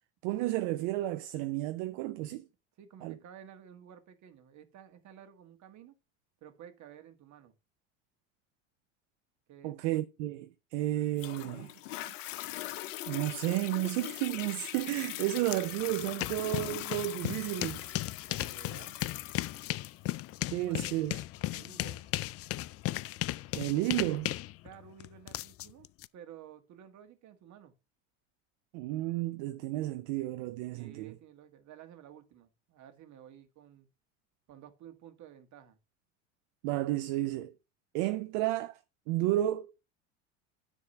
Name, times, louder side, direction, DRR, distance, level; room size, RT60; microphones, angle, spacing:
voice 1, 0.2-2.5 3.0-3.2 9.6-11.7 13.1-17.9 20.5-21.2 23.5-24.3 28.7-31.2 36.6-37.5 37.9-38.8 39.1-39.7, right 15 dB, 65° right, 0.7 m, -32 dB
voice 2, 2.8-6.0 6.4-7.5 9.5-9.7 18.3-19.0 20.6-20.9 21.5-22.0 24.6-25.9 26.1-27.7 30.7-33.9 34.5-35.8, right 9 dB, 50° right, 1.8 m, -53 dB
Toilet flush, 11.2-24.2 24.8-24.9, left 15 dB, 80° left, 0.7 m, -42 dB
sound 1, 15.5-15.6 15.9-26.1, left 16 dB, 40° left, 0.4 m, -36 dB
9.8 x 3.6 x 5.6 m
hypercardioid pair, 85°, 38 cm